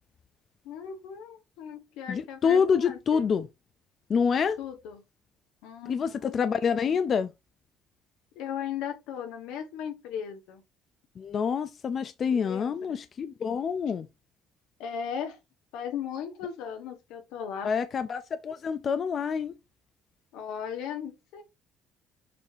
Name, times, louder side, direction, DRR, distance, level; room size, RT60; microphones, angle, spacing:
voice 1, 0.6-3.3 4.6-5.0 5.6-6.3 8.3-10.6 12.3-13.0 14.8-15.4 15.7-17.7 20.3-21.4, left 8 dB, 85° left, 1.4 m, -37 dB
voice 2, 2.1-3.5 4.1-4.6 5.9-7.3 11.2-14.1 17.6-19.5, left 6 dB, 45° left, 0.5 m, -27 dB
6.7 x 2.8 x 5.0 m
cardioid pair, 110°, 0 cm